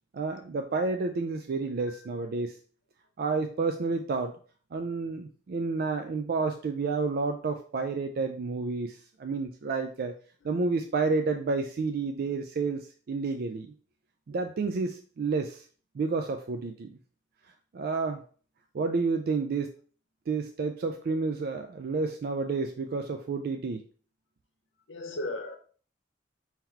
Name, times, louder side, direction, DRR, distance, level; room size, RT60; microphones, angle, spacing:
voice 1, 0.1-2.5 3.2-4.3 4.7-10.2 10.4-13.7 14.3-15.6 15.9-17.0 17.7-18.2 18.7-19.7 20.3-23.8, right 4 dB, 55° right, 5 dB, 0.3 m, -30 dB
voice 2, 24.9-25.6, left 1 dB, 85° left, 6 dB, 0.8 m, -37 dB
3.8 x 2.9 x 4.4 m, 0.43 s
head